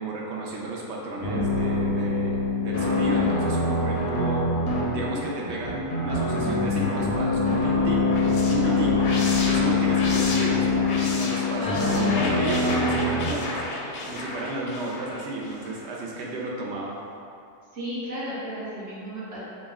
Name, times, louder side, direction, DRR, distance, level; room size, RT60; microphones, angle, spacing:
voice 1, 0.0-4.5 4.9-8.1 8.5-9.0 9.3-13.6 14.1-17.0, right 2 dB, 70° right, -2 dB, 0.6 m, -32 dB
sound 1, 1.2-13.3, left 3 dB, 55° left, 0.7 m, -24 dB
sound 2, 7.9-16.0, left 2 dB, 80° left, 1.1 m, -33 dB
voice 2, 11.6-12.3 17.7-19.4, equal, 50° right, -9 dB, 1.1 m, -33 dB
4.1 x 2.2 x 3.4 m, 2.5 s
omnidirectional pair, 1.7 m